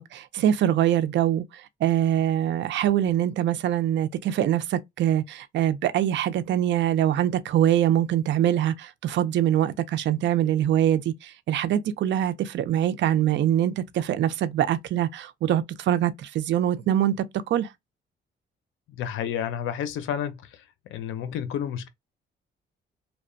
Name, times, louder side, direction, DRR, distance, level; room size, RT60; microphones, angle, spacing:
voice 1, 0.0-17.7, right 11 dB, 65° right, 0.4 m, -24 dB
voice 2, 18.9-20.6 20.9-21.9, left 9 dB, 80° left, 0.6 m, -30 dB
2.8 x 2.1 x 2.5 m
cardioid pair, 90°, 20 cm